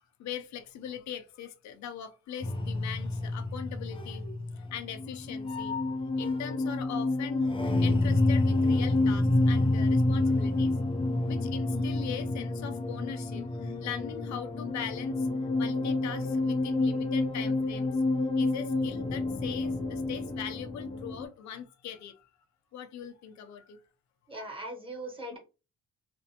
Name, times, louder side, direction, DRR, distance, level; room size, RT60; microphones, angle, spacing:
voice 1, 0.2-4.2 4.5-5.8 6.2-10.7 11.2-15.3 15.6-18.0 18.4-22.3 22.7-23.8, left 8 dB, 65° left, 0.6 m, -40 dB
sound 1, 2.4-21.2, left 2 dB, 20° left, 0.4 m, -28 dB
voice 2, 24.3-25.4, right 1 dB, 15° right, 1.2 m, -39 dB
2.5 x 2.1 x 2.7 m
cardioid pair, 90°, 30 cm